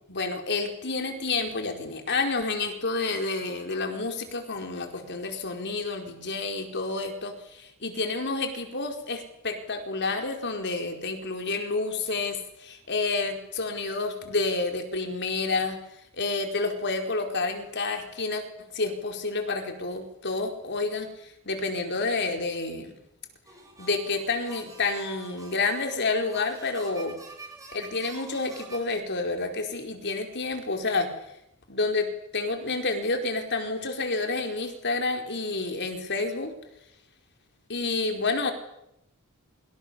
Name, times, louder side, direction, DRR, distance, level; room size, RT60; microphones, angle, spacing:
voice 1, 0.1-15.8 16.1-22.9 23.8-27.2 27.7-31.1 31.7-36.5 37.7-38.5, left 3 dB, 50° left, 4 dB, 4.7 m, -29 dB
sound 1, 23.5-28.9, right 2 dB, 15° right, 6.4 m, -47 dB
29.5 x 25.5 x 7.0 m, 0.82 s
head